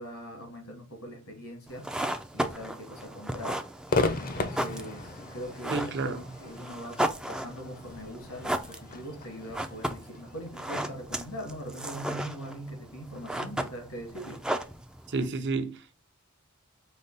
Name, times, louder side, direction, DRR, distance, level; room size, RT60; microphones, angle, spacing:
voice 1, 0.0-3.7 4.1-14.4, equal, 85° left, 1.7 m, -41 dB
sound 1, 1.7-15.3, right 1 dB, 5° right, 0.3 m, -35 dB
Crowd / Fireworks, 3.9-11.2, left 3 dB, 40° left, 0.6 m, -35 dB
voice 2, 5.7-6.2 15.1-15.9, right 3 dB, 55° right, 0.6 m, -30 dB
5.2 x 2.3 x 3.9 m
head